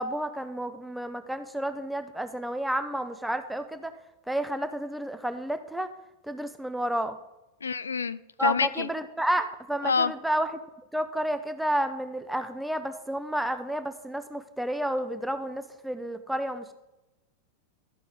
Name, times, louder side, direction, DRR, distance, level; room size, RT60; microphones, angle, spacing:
voice 1, 0.0-3.9 4.3-5.9 6.3-7.2 8.4-10.6 10.9-16.7, right 1 dB, ahead, 9 dB, 0.5 m, -31 dB
voice 2, 7.6-8.9 9.8-10.1, left 5 dB, 75° left, 16 dB, 0.3 m, -27 dB
12.5 x 4.8 x 3.7 m, 0.98 s
figure-of-eight pair, 90°, 0 cm